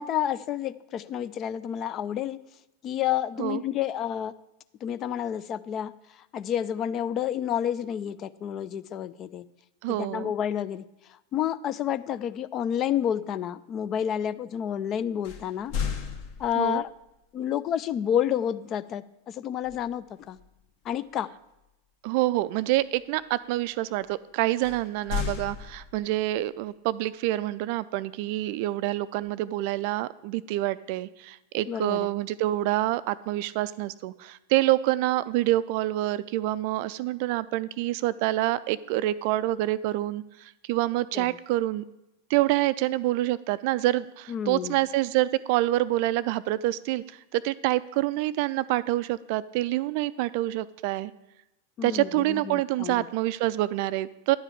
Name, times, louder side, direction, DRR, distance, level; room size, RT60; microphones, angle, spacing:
voice 1, 0.0-2.4 2.8-4.3 4.8-9.4 9.9-15.7 16.4-16.9 17.3-20.4 20.8-21.3 31.7-32.1 41.1-41.4 44.3-44.8 51.8-53.1, left 10 dB, 30° left, 15 dB, 0.4 m, -30 dB
voice 2, 9.8-10.3 16.6-16.8 22.0-41.8 42.3-47.0 47.3-51.1 51.8-54.4, right 16 dB, 45° right, 17 dB, 0.4 m, -27 dB
sound 1, 15.2-16.9 19.6-19.9 20.4-20.6 24.6-26.3, left 7 dB, 50° left, 1.4 m, -34 dB
10.5 x 4.9 x 8.0 m, 0.90 s
figure-of-eight pair, 90°, 0 cm